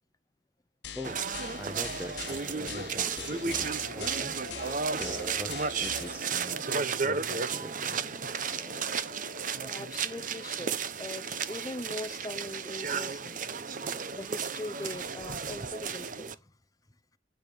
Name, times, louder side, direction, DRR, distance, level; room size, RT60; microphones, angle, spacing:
sound 1, 0.8-6.2, left 7 dB, 70° left, 1.3 m, -43 dB
voice 1, 0.9-1.2 1.5-8.0, equal, 10° right, 1.1 m, -43 dB
sound 2, 1.0-16.3, right 6 dB, 45° right, 0.9 m, -33 dB
sound 3, 2.6-9.7, left 1 dB, 65° right, 4.1 m, -47 dB
voice 2, 9.6-13.4 14.1-16.4, left 2 dB, 20° left, 0.8 m, -41 dB
11.0 x 6.9 x 9.1 m
head